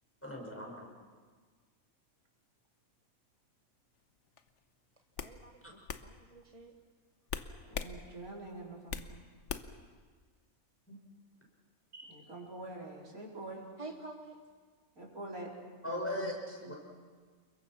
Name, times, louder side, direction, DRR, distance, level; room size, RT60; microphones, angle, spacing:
voice 1, 0.2-0.9 10.9-11.0 15.8-16.8, left 1 dB, 10° left, -1 dB, 5.3 m, -38 dB
sound 1, 4.4-4.6 5.2-5.4 5.9-6.1 7.3-7.9 8.3-9.1 9.5-9.8, left 6 dB, 55° left, 1.2 m, -39 dB
voice 2, 5.2-6.7 13.8-14.4, right 2 dB, 25° right, 3 dB, 1.2 m, -48 dB
voice 3, 7.4-9.2 11.9-13.6 15.0-15.5 15.8-16.3 16.6-16.7, right 2 dB, 75° right, -2 dB, 4.5 m, -46 dB
28.5 x 22.5 x 6.0 m, 1.5 s
omnidirectional pair, 1.5 m